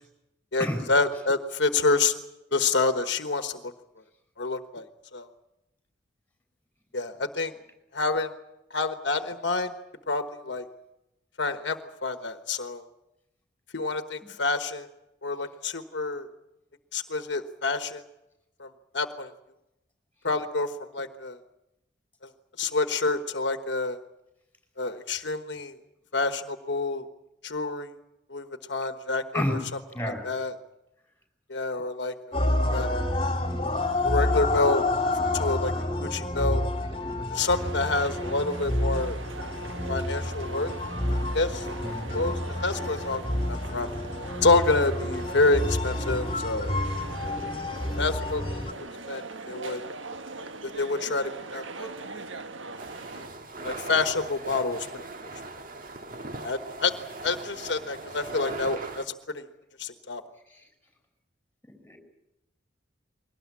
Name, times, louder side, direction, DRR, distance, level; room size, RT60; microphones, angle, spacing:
voice 1, 0.5-2.1 2.5-3.7 4.4-4.8 5.1-5.3 6.9-7.5 7.9-8.3 8.7-9.7 10.1-10.6 11.4-12.8 13.7-14.9 15.2-16.3 16.9-18.0 18.6-18.7 18.9-19.3 20.2-21.4 22.6-24.0 24.8-25.7 26.1-27.0 27.4-27.9 28.3-29.4 30.2-30.5 31.5-32.4 32.7-32.9 34.0-34.8 35.3-35.7 36.0-36.6 37.3-39.2 39.9-40.7 41.3-41.7 42.1-43.9 44.4-46.7 48.0-48.4 49.1-49.8 50.8-51.9 53.6-55.3 56.3-56.9 57.2-59.5 59.8-60.2, left 3 dB, 65° left, 8 dB, 1.3 m, -27 dB
voice 2, 29.9-30.2 41.8-42.1 60.5-60.6 61.8-62.0, left 1 dB, 10° left, 4 dB, 5.1 m, -30 dB
sound 1, 32.3-48.7, left 1 dB, 30° left, 2.3 m, -29 dB
sound 2, 37.4-53.3, right 3 dB, 85° right, 1.4 m, -41 dB
sound 3, 52.8-59.0, right 2 dB, 45° right, 1.7 m, -39 dB
22.5 x 18.5 x 9.7 m, 0.91 s
head